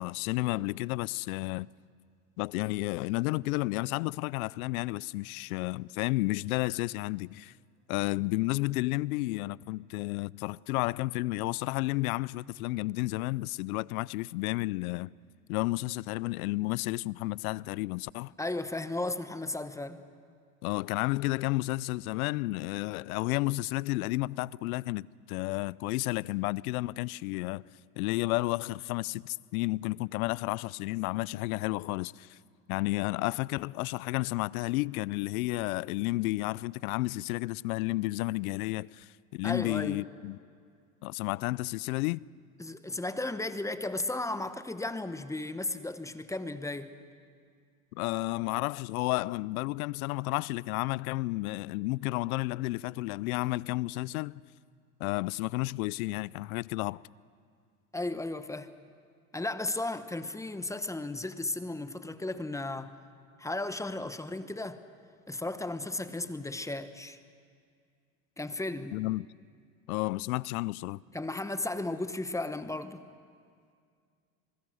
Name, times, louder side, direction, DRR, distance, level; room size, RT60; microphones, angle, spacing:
voice 1, 0.0-1.7 2.4-7.5 7.9-15.1 15.5-18.3 20.6-27.6 28.0-32.4 32.7-40.4 41.0-42.2 47.9-54.4 55.0-57.0 68.9-69.3 69.9-71.0, left 20 dB, 80° left, 0.5 m, -32 dB
voice 2, 18.4-20.0 39.4-40.0 42.6-46.9 57.9-58.7 59.3-63.0 63.4-64.8 65.3-67.2 68.4-69.0 71.1-73.0, left 2 dB, 5° left, 0.9 m, -35 dB
27.0 x 21.0 x 6.3 m
supercardioid pair, 105°, 43 cm